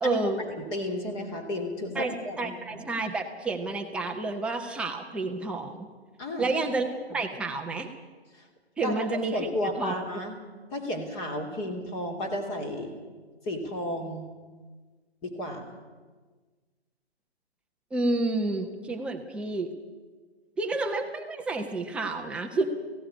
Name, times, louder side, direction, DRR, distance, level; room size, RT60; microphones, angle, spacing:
voice 1, 0.0-0.5 2.0-5.9 6.4-7.9 8.8-9.5 9.8-9.9 17.9-19.7 20.6-22.6, right 3 dB, 5° right, 3 dB, 0.8 m, -30 dB
voice 2, 0.6-2.6 6.2-6.5 8.3-8.5 8.8-9.0 9.3-10.4 10.7-13.0 13.4-14.3 15.2-15.7, left 1 dB, 20° left, 4 dB, 2.8 m, -33 dB
17.0 x 16.0 x 9.9 m, 1.4 s
figure-of-eight pair, 140°, 32 cm